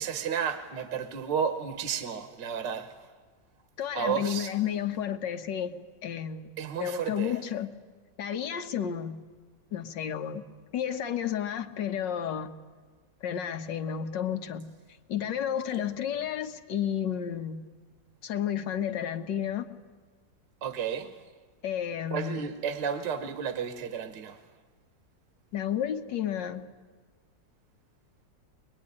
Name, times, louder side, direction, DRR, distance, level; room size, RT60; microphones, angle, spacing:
voice 1, 0.0-2.9 4.0-4.5 6.6-7.4 20.6-21.1 22.1-24.4, right 7 dB, 80° right, 8 dB, 1.8 m, -32 dB
voice 2, 3.8-5.7 6.0-7.7 8.2-9.2 9.7-10.4 10.7-12.5 13.2-14.7 15.1-17.6 18.2-19.8 21.6-22.4 25.5-26.7, left 9 dB, 80° left, 8 dB, 1.7 m, -31 dB
23.0 x 21.5 x 9.7 m, 1.5 s
omnidirectional pair, 1.9 m